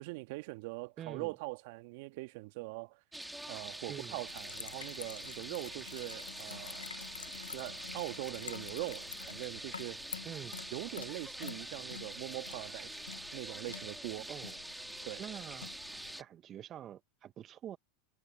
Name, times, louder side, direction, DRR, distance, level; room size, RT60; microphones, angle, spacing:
voice 1, 0.0-3.0 3.5-6.9 7.4-10.1 10.7-12.9 13.3-14.3 15.0-15.2, right 24 dB, 60° right, 1.7 m, -42 dB
voice 2, 1.0-1.3 3.9-4.2 10.2-10.6 14.3-14.6 15.2-15.7 16.2-17.8, right 11 dB, 35° right, 1.1 m, -46 dB
sound 1, 3.1-16.2, right 1 dB, 5° right, 1.8 m, -45 dB
sound 2, 4.3-16.1, left 7 dB, 85° left, 0.8 m, -49 dB
hypercardioid pair, 90°, 0 cm